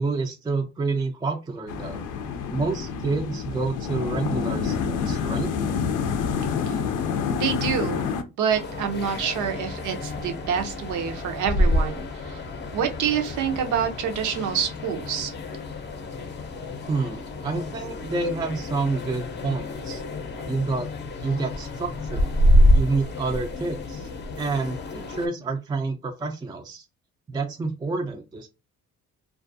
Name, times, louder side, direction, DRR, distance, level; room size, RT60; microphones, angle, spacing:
voice 1, 0.0-2.0 2.5-5.5 16.9-20.0 20.5-20.9 21.2-22.3 22.7-24.1 24.4-26.8 27.3-28.5, right 3 dB, 15° right, 4 dB, 0.3 m, -28 dB
sound 1, 1.7-8.2, left 6 dB, 90° left, 0.5 m, -27 dB
voice 2, 7.4-8.1 8.4-12.4 12.7-15.3, right 7 dB, 80° right, 5 dB, 0.7 m, -27 dB
sound 2, 8.5-25.3, equal, 35° left, 0.6 m, -27 dB
2.4 x 2.3 x 2.5 m, 0.27 s
cardioid pair, 90°, 30 cm